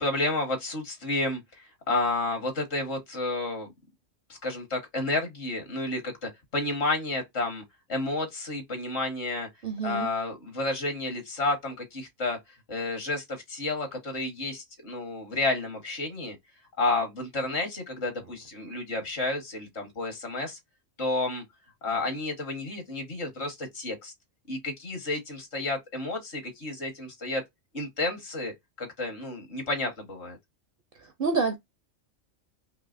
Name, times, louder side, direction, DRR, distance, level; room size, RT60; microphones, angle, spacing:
voice 1, 0.0-1.4 1.9-3.7 4.3-7.6 7.9-9.5 9.8-12.4 12.7-16.4 16.8-20.6 21.0-21.4 21.8-24.1 24.5-27.4 27.7-30.4, left 2 dB, 60° left, 1.5 m, -31 dB
voice 2, 9.6-10.1 31.2-31.5, right 4 dB, 55° right, 0.7 m, -27 dB
4.7 x 2.8 x 2.5 m
omnidirectional pair, 1.3 m